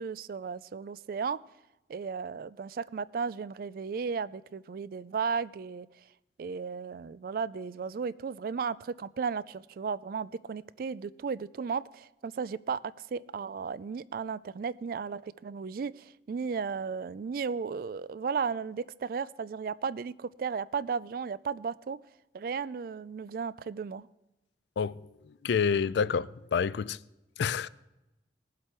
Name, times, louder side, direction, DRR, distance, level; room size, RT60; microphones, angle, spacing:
voice 1, 0.0-1.4 1.9-5.9 6.4-12.8 13.1-22.0 22.3-24.1, right 5 dB, 50° right, 0.3 m, -35 dB
voice 2, 25.4-27.0 27.4-27.7, left 6 dB, 70° left, 0.3 m, -28 dB
19.0 x 7.6 x 4.5 m
head